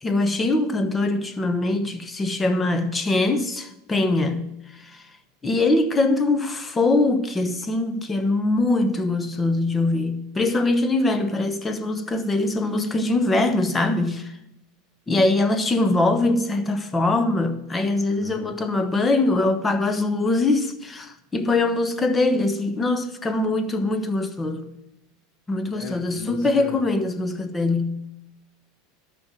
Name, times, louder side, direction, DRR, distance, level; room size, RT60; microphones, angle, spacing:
voice 1, 0.0-4.5 4.8-5.0 5.4-14.3 15.1-24.7 25.5-28.0, left 2 dB, 20° left, 1.2 m, -22 dB
voice 2, 18.1-18.6 25.6-26.8, left 5 dB, 40° left, 1.5 m, -37 dB
12.5 x 6.2 x 6.1 m
hypercardioid pair, 95°, 0 cm